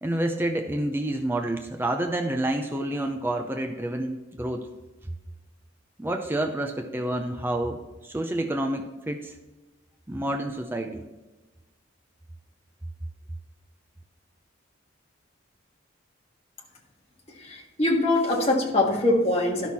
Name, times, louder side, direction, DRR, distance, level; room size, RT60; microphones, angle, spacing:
voice 1, 0.0-4.7 6.0-9.3 10.1-11.1, right 1 dB, 10° right, 4 dB, 0.5 m, -29 dB
voice 2, 17.4-19.7, left 2 dB, 30° left, -1 dB, 1.5 m, -23 dB
11.5 x 6.1 x 4.2 m, 1.1 s
head